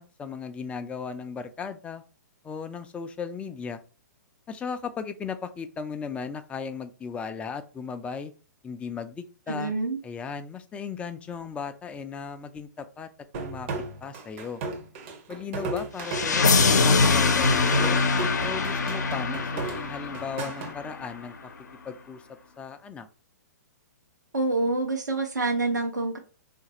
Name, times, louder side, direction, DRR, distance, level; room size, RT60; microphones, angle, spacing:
voice 1, 0.0-2.0 2.4-3.8 4.5-8.3 8.6-9.7 10.0-13.1 13.4-13.7 14.0-14.6 15.3-18.0 18.4-21.5 21.8-22.2 22.6-23.1, left 6 dB, 10° left, 9 dB, 0.4 m, -36 dB
voice 2, 9.5-10.0 24.3-26.2, right 2 dB, 85° right, 2 dB, 0.8 m, -27 dB
sound 1, 13.3-20.7, right 3 dB, 45° right, 0.8 m, -35 dB
sound 2, 16.0-21.0, left 4 dB, 75° left, 0.6 m, -23 dB
3.9 x 2.5 x 2.9 m, 0.36 s
figure-of-eight pair, 120°, 9 cm